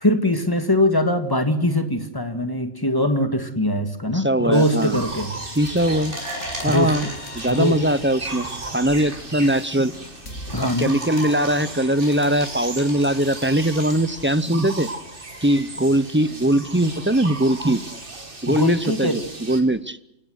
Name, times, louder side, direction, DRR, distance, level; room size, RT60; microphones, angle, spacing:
voice 1, 0.0-5.3 6.7-6.9 7.5-7.8 10.5-11.0 18.5-19.2, left 1 dB, 15° left, 8 dB, 2.0 m, -22 dB
voice 2, 4.1-5.0 5.6-6.2 6.6-7.0 7.3-8.5 8.7-9.9 10.8-14.9 15.4-17.8 18.4-20.0, right 1 dB, 10° right, 15 dB, 0.6 m, -21 dB
sound 1, 4.5-19.6, right 2 dB, 45° right, 2.6 m, -36 dB
sound 2, 4.9-10.6, left 1 dB, 80° left, 2.9 m, -40 dB
sound 3, 5.8-13.9, equal, 65° right, 8.4 m, -38 dB
28.5 x 17.5 x 6.5 m, 0.86 s
omnidirectional pair, 1.3 m